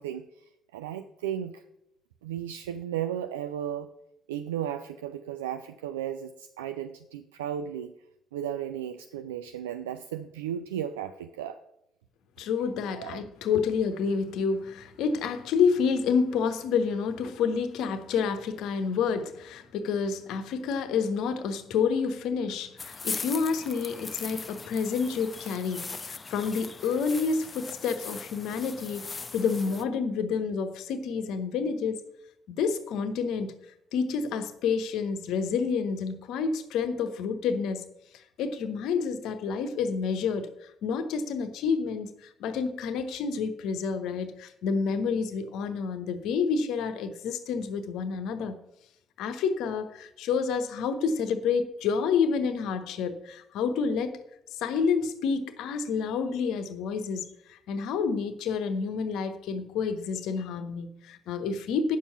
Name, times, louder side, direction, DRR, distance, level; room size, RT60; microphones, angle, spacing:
voice 1, 0.0-1.6 2.2-3.9 4.3-7.9 8.3-11.6 12.9-13.2, right 10 dB, 75° right, 9 dB, 0.3 m, -35 dB
voice 2, 12.4-32.0 32.5-33.5 33.9-37.8 38.4-48.6 49.2-54.2 54.5-62.0, left 5 dB, 60° left, 10 dB, 0.9 m, -29 dB
sound 1, 22.8-29.8, left 4 dB, 30° left, 0.7 m, -39 dB
9.2 x 7.1 x 5.8 m, 0.80 s
figure-of-eight pair, 45°, 0 cm